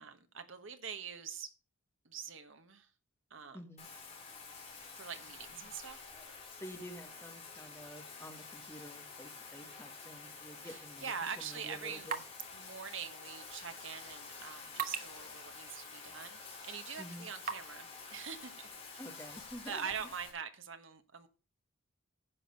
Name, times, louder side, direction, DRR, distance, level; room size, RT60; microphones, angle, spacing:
voice 1, 0.0-1.5 2.0-2.9 3.3-3.6 4.9-6.5 10.6-12.1 12.5-18.5 19.7-21.3, right 7 dB, 60° right, 1.3 m, -44 dB
sound 1, 3.3-3.8 4.3-4.7 6.0-6.6 7.5-8.1 8.6-9.1 9.6-9.9, left 1 dB, 5° right, 4.4 m, -70 dB
voice 2, 3.5-3.9 6.6-12.2 17.0-17.3 19.0-19.9, equal, 10° left, 1.4 m, -49 dB
Bathtub (filling or washing), 3.8-20.3, left 4 dB, 30° left, 3.7 m, -50 dB
sound 2, 11.0-17.8, right 7 dB, 40° right, 1.0 m, -46 dB
10.0 x 6.3 x 6.4 m
head